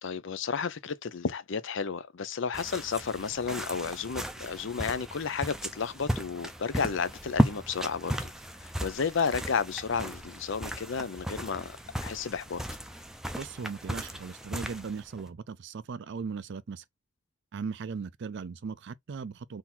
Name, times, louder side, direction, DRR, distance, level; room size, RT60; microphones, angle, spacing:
voice 1, 0.0-8.3 8.8-12.6, left 5 dB, 65° left, 0.6 m, -32 dB
sound 1, 2.5-15.3, equal, ahead, 0.5 m, -35 dB
voice 2, 13.4-16.8 17.5-19.6, right 5 dB, 60° right, 0.4 m, -38 dB
3.8 x 2.7 x 4.3 m
head